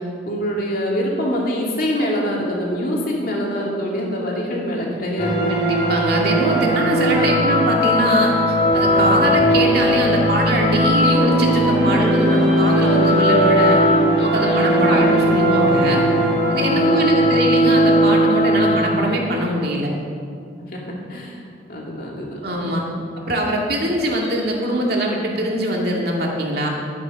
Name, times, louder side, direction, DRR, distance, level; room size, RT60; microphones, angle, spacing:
voice 1, 0.0-5.5 7.1-7.4 14.7-15.0 16.6-17.3 20.6-21.4 21.7-22.8, equal, 50° left, -3 dB, 2.6 m, -25 dB
sound 1, 5.2-19.0, equal, 30° left, 3.4 m, -17 dB
voice 2, 5.5-13.8 14.2-16.1 16.5-19.9 22.4-22.9 23.2-26.7, right 1 dB, 55° right, -1 dB, 2.2 m, -22 dB
12.0 x 9.8 x 6.4 m, 2.4 s
head